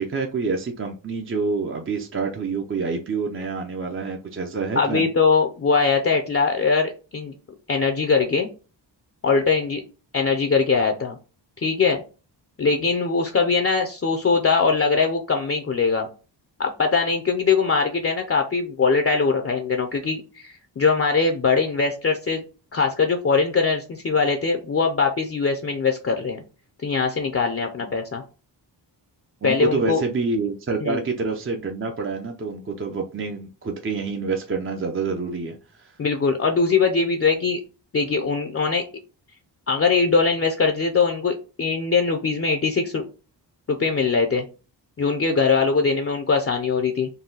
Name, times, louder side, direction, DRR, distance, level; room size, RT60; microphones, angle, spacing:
voice 1, 0.0-5.1 29.4-36.0, right 4 dB, 30° right, 2 dB, 0.5 m, -27 dB
voice 2, 4.8-7.3 7.7-8.5 9.2-9.8 10.1-11.2 11.6-12.0 12.6-16.1 16.6-22.4 22.7-26.4 26.8-28.2 29.4-30.0 30.8-31.0 36.0-37.6 37.9-38.8 39.7-43.1 43.7-44.4 45.0-47.1, left 4 dB, 30° left, 4 dB, 0.5 m, -21 dB
4.0 x 2.2 x 3.9 m, 0.34 s
cardioid pair, 80°, 45 cm